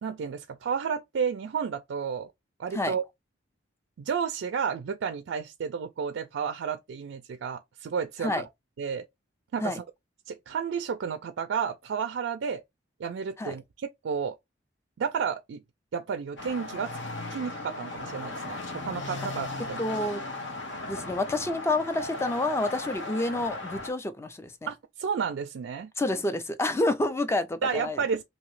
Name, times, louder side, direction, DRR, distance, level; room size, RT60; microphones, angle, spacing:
voice 1, 0.0-2.3 2.6-3.0 4.0-8.4 8.8-9.0 9.5-9.8 10.3-12.6 13.0-14.4 15.0-15.6 15.9-16.9 17.3-19.8 24.7-25.9 27.6-28.2, right 6 dB, 75° right, 0.3 m, -31 dB
sound 1, 16.4-23.9, left 2 dB, 65° left, 0.9 m, -37 dB
voice 2, 19.8-20.2 20.9-24.7 26.0-28.0, left 2 dB, 15° left, 0.4 m, -28 dB
2.9 x 2.7 x 3.0 m
head